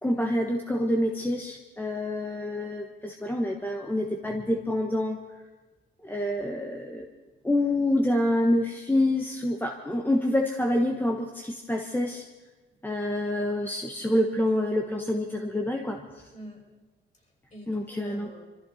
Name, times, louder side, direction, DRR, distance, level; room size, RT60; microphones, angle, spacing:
voice 1, 0.0-5.2 6.0-7.1 7.4-12.2 12.8-16.2 17.7-18.3, left 1 dB, 10° left, 2 dB, 1.3 m, -27 dB
voice 2, 16.3-16.7 17.2-18.4, equal, 35° left, -2 dB, 6.1 m, -46 dB
23.5 x 14.5 x 4.2 m, 1.2 s
cardioid pair, 90°, 20 cm